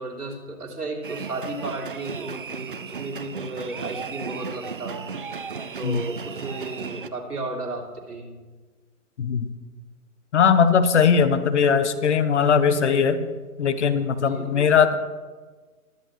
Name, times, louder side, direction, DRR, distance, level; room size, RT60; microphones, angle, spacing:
voice 1, 0.0-5.1 5.8-8.4 14.2-14.7, right 2 dB, 90° right, -1 dB, 3.2 m, -34 dB
sound 1, 1.0-7.1, right 5 dB, 40° right, 0.4 m, -35 dB
voice 2, 9.2-9.5 10.3-13.2 13.6-15.0, left 6 dB, 50° left, 12 dB, 0.9 m, -19 dB
21.5 x 7.9 x 3.1 m, 1.4 s
hypercardioid pair, 155°, 45 cm